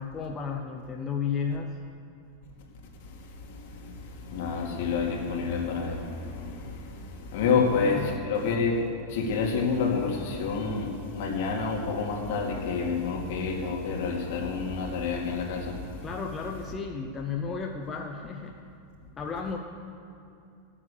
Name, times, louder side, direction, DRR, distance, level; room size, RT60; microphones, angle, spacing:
voice 1, 0.0-1.8 7.5-8.2 16.0-18.6 19.2-19.6, left 6 dB, 15° left, 1 dB, 0.6 m, -33 dB
voice 2, 4.3-6.1 6.4-6.5 7.3-8.8 9.1-15.7, left 5 dB, 60° left, -1 dB, 2.4 m, -28 dB
15.5 x 7.3 x 6.6 m, 2.6 s
supercardioid pair, 165°, 0 cm